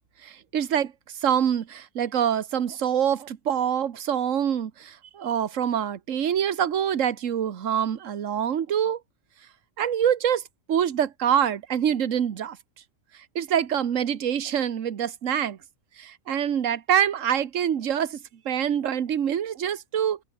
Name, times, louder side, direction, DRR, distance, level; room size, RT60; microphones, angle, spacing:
voice 1, 0.2-0.9 1.2-9.0 9.8-10.4 10.7-12.6 13.3-15.6 16.0-18.2 18.4-20.2, right 9 dB, 65° right, 1.5 m, -25 dB
omnidirectional pair, 1.4 m